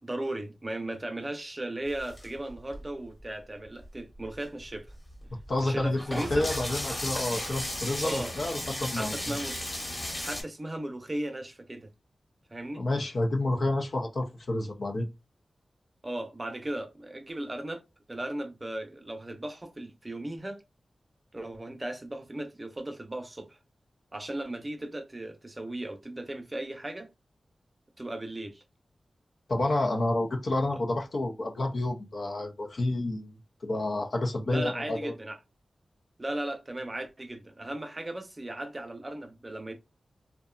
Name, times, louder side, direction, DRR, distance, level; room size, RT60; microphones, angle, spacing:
voice 1, 0.0-4.9 5.6-6.5 8.0-8.3 8.9-9.6 10.2-11.9 12.5-12.8 16.0-17.8 18.1-20.6 21.3-23.6 24.1-27.1 28.0-28.6 34.4-35.4 36.2-39.7, right 1 dB, 30° right, 0.7 m, -36 dB
sound 1, 1.9-3.2 3.8-3.9 4.1-10.4, left 1 dB, 30° left, 1.2 m, -35 dB
voice 2, 5.3-9.5 12.8-15.1 29.5-35.1, left 2 dB, 65° left, 0.6 m, -29 dB
2.7 x 2.2 x 2.2 m
cardioid pair, 45°, 0 cm